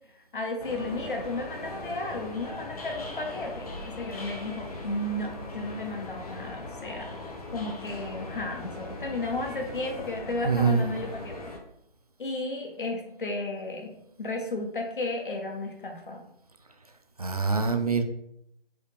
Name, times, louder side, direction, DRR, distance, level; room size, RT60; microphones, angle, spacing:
voice 1, 0.3-7.1 7.5-11.3 12.2-16.2, left 2 dB, 60° left, 2 dB, 1.1 m, -33 dB
sound 1, 0.6-11.6, left 2 dB, 40° left, 0.8 m, -39 dB
voice 2, 10.4-10.8 17.2-18.0, right 5 dB, 40° right, 7 dB, 0.4 m, -24 dB
4.6 x 3.4 x 3.2 m, 0.77 s
figure-of-eight pair, 165°, 30 cm